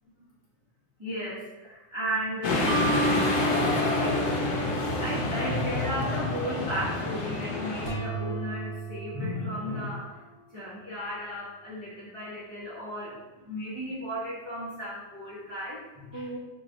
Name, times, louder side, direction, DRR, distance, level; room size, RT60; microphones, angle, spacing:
voice 1, 1.0-2.9 3.9-4.3 4.6-10.2 10.5-16.4, equal, 50° right, -8 dB, 0.3 m, -35 dB
sound 1, 2.4-7.9, left 2 dB, 70° left, 1.1 m, -28 dB
Mallet percussion, 2.7-5.9, right 2 dB, 5° left, 0.7 m, -31 dB
sound 2, 7.9-10.6, right 4 dB, 45° left, 1.3 m, -37 dB
3.9 x 3.1 x 2.6 m, 1.1 s
omnidirectional pair, 1.8 m